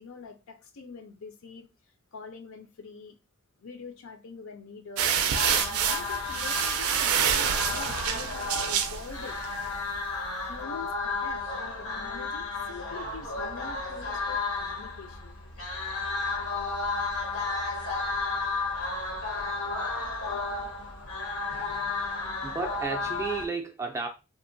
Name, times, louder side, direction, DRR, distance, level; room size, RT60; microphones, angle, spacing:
voice 1, 0.0-1.7 2.1-3.2 3.6-5.2 5.5-9.4 10.5-15.4, left 5 dB, 70° left, 0.5 m, -45 dB
sound 1, 5.0-9.6, right 8 dB, 90° right, 0.4 m, -27 dB
sound 2, 5.3-23.5, left 3 dB, 85° left, 0.9 m, -33 dB
voice 2, 22.4-24.1, right 3 dB, 15° right, 0.3 m, -32 dB
2.8 x 2.1 x 2.6 m
head